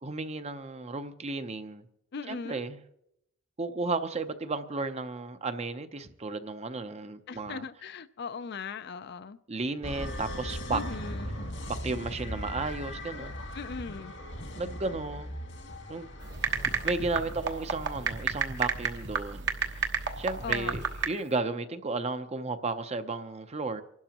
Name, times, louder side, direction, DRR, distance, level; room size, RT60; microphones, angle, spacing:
voice 1, 0.0-1.8 2.3-2.8 3.6-7.6 9.5-10.8 11.7-13.4 14.5-15.3 15.9-16.1 16.8-19.9 20.2-23.8, right 3 dB, 35° right, 0.7 m, -34 dB
voice 2, 2.1-2.7 7.3-9.4 10.7-11.4 13.5-14.1 20.4-20.8, left 5 dB, 60° left, 0.5 m, -39 dB
sound 1, 9.8-18.1, equal, 80° left, 2.2 m, -39 dB
sound 2, 16.2-21.0, right 5 dB, 65° right, 1.2 m, -31 dB
28.0 x 12.0 x 2.9 m
head